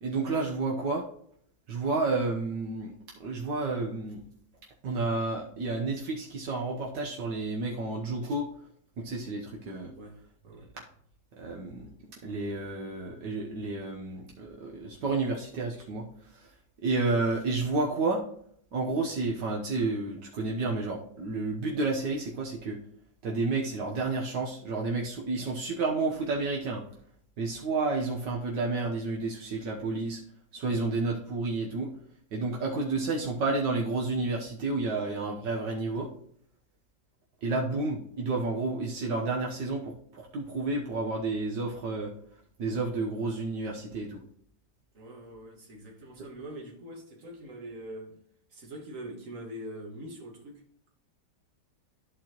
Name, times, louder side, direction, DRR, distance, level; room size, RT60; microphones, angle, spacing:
voice 1, 0.0-1.0 1.7-2.9 3.2-4.2 4.8-8.5 9.0-9.9 11.4-11.9 12.2-16.1 16.3-16.5 16.8-18.2 18.7-22.8 23.2-26.8 27.4-30.2 30.5-31.9 32.3-36.1 37.4-42.1 42.6-44.2, right 3 dB, 75° right, 1.7 m, -30 dB
voice 2, 9.9-10.7 34.9-35.0 44.9-48.2 48.5-50.6, right 1 dB, 45° right, 2.1 m, -43 dB
13.5 x 4.5 x 3.0 m
omnidirectional pair, 2.0 m